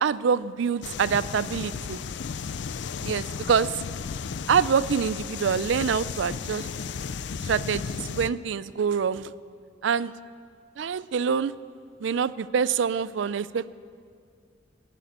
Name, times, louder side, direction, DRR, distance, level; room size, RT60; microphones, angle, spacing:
voice 1, 0.0-2.0 3.0-3.7 4.5-6.7 7.4-9.3 9.8-10.1 10.8-11.5 12.0-13.7, right 6 dB, 70° right, 17 dB, 0.4 m, -25 dB
sound 1, 0.8-8.3, left 6 dB, 60° left, 0.4 m, -34 dB
13.0 x 11.0 x 8.2 m, 2.2 s
head